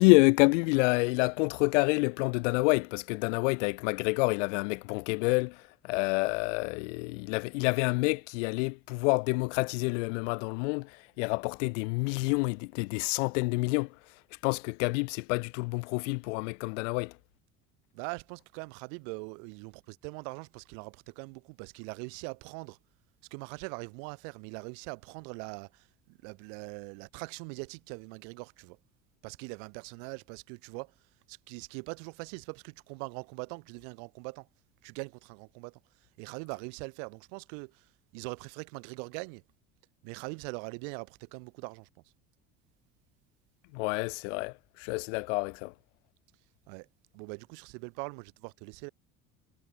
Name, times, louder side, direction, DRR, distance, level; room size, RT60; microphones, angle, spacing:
voice 1, 0.0-13.9 14.4-17.1 43.7-45.7, left 29 dB, 80° left, 0.8 m, -28 dB
voice 2, 17.9-22.8 23.3-28.8 29.2-30.9 31.3-34.5 34.8-35.8 36.2-37.8 38.1-39.4 40.0-41.9 46.7-46.9 47.1-48.9, right 39 dB, 80° right, 3.0 m, -42 dB
supercardioid pair, 80°, 36 cm